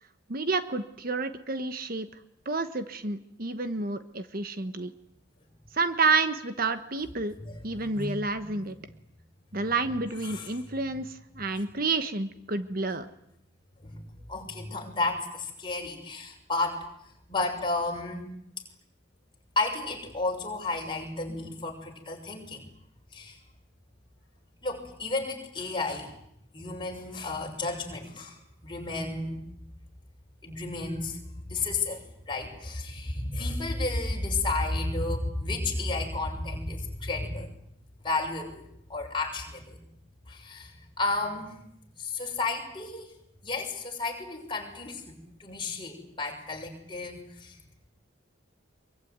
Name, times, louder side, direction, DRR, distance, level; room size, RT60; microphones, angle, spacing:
voice 1, 0.3-2.1 2.4-4.9 5.7-7.3 7.6-8.8 9.5-13.1, right 3 dB, 50° right, 10 dB, 1.3 m, -29 dB
voice 2, 7.4-8.5 9.6-9.7 10.2-10.8 13.8-14.0 14.3-16.9 17.3-18.3 19.6-22.6 23.1-23.4 24.6-26.1 26.5-28.4 28.6-29.4 30.4-31.2 31.5-37.5 38.0-39.8 40.3-41.5 42.0-43.1 43.4-47.6, left 2 dB, 25° left, 1 dB, 6.3 m, -32 dB
24.5 x 23.5 x 9.5 m, 0.76 s
head